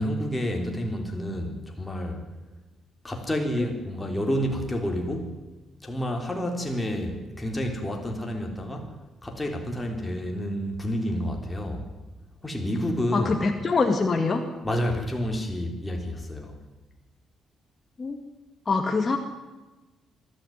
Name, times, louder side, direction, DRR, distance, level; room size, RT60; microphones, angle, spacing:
voice 1, 0.0-2.2 3.0-5.4 5.8-9.0 9.2-11.9 12.4-13.3 14.6-16.6, equal, 15° left, 2 dB, 3.8 m, -29 dB
voice 2, 13.1-14.4 18.0-18.2 18.7-19.2, left 4 dB, 30° left, 3 dB, 2.2 m, -24 dB
22.5 x 13.0 x 9.4 m, 1.1 s
cardioid pair, 90°, 0 cm